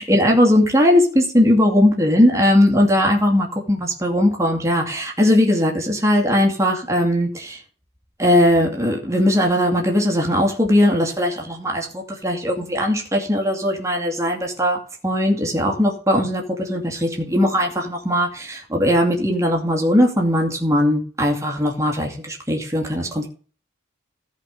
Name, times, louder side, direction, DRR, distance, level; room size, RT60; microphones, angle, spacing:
voice 1, 0.0-7.6 8.2-14.8 15.0-23.3, left 1 dB, 15° right, 1 dB, 2.4 m, -19 dB
14.0 x 5.3 x 5.3 m, 0.41 s
head